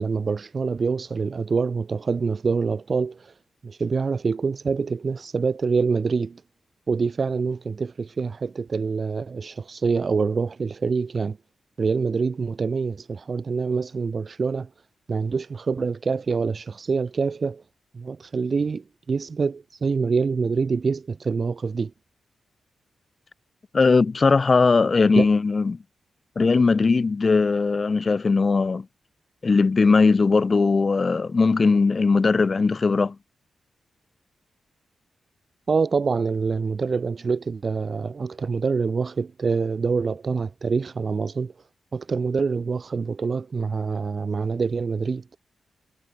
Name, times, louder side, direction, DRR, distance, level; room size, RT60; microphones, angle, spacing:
voice 1, 0.0-3.3 3.6-6.4 6.9-11.4 11.8-14.7 15.1-17.6 17.9-21.9 25.1-25.3 35.7-41.5 41.9-45.2, right 5 dB, 35° right, 0.6 m, -25 dB
voice 2, 23.7-25.8 26.4-28.9 29.4-33.2, left 4 dB, 30° left, 0.6 m, -19 dB
wide cardioid pair, 165°, 0 cm